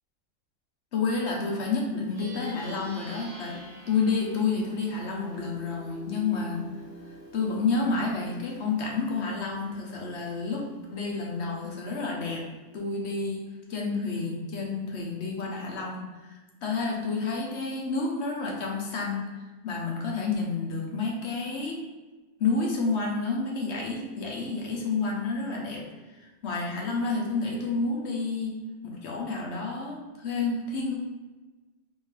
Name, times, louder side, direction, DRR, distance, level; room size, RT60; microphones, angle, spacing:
voice 1, 0.9-3.6 3.9-6.6 7.3-12.4 12.7-19.3 19.6-21.8 22.4-25.8 26.2-31.0, left 4 dB, 65° left, -1 dB, 1.0 m, -30 dB
Plucked string instrument, 1.9-11.7, right 1 dB, 50° right, 0.8 m, -47 dB
3.7 x 2.6 x 3.2 m, 1.2 s
omnidirectional pair, 1.3 m